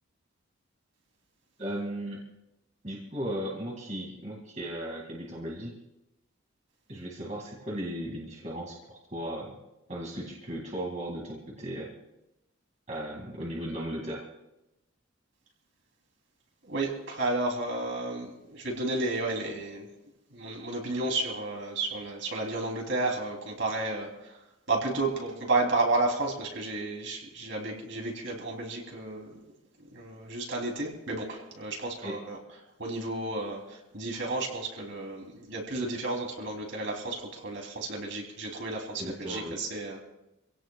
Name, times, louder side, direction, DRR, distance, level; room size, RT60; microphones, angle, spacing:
voice 1, 1.6-2.2 2.8-5.8 6.9-9.6 9.9-11.9 12.9-14.2 32.0-32.2 39.0-39.6, right 1 dB, 35° right, -2 dB, 2.3 m, -36 dB
voice 2, 16.6-19.9 20.3-29.3 29.8-32.4 32.8-40.0, right 2 dB, 60° right, 0 dB, 3.3 m, -32 dB
26.5 x 17.0 x 2.4 m, 0.92 s
head